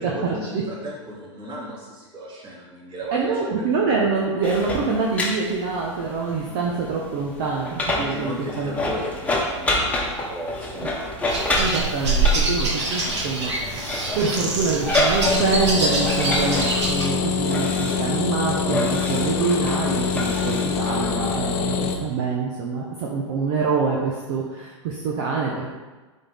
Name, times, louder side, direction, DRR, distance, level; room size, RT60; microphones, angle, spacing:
voice 1, 0.0-3.7 6.3-6.8 7.9-11.2, right 1 dB, 30° right, -5 dB, 2.5 m, -35 dB
voice 2, 3.1-8.8 11.6-13.9 14.1-25.7, right 4 dB, 45° right, -2 dB, 1.1 m, -25 dB
sound 1, 4.4-21.3, left 2 dB, 10° left, 1.3 m, -29 dB
sound 2, 11.3-17.1, right 2 dB, 65° right, 2.0 m, -25 dB
sound 3, 15.2-22.0, left 6 dB, 40° left, 0.9 m, -25 dB
11.0 x 4.3 x 3.6 m, 1.3 s
figure-of-eight pair, 105°, 16 cm